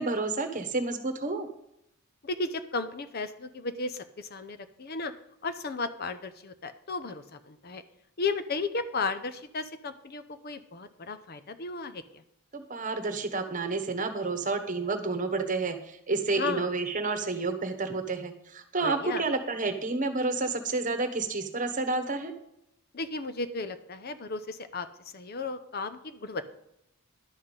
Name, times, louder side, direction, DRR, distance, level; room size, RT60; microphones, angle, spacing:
voice 1, 0.0-1.5 12.5-22.3, right 3 dB, 35° right, 8 dB, 1.2 m, -30 dB
voice 2, 2.2-5.1 5.4-7.8 8.2-12.2 16.3-16.7 18.8-19.3 22.9-24.9 25.1-26.5, left 3 dB, 45° left, 11 dB, 0.7 m, -34 dB
11.5 x 5.7 x 8.0 m, 0.79 s
head